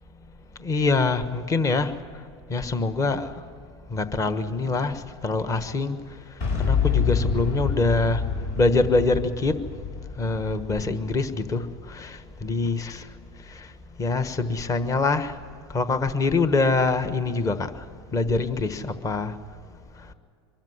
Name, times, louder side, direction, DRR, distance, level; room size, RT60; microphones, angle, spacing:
voice 1, 0.6-1.9 2.5-3.4 3.9-6.0 6.5-8.2 8.6-9.6 10.2-13.1 13.4-13.7 14.0-15.4 15.7-17.8 18.1-19.4, left 3 dB, 25° left, 10 dB, 1.2 m, -24 dB
Boom, 6.4-12.3, left 6 dB, 60° left, 6.0 m, -28 dB
24.0 x 13.0 x 9.8 m, 2.3 s
hypercardioid pair, 110°, 14 cm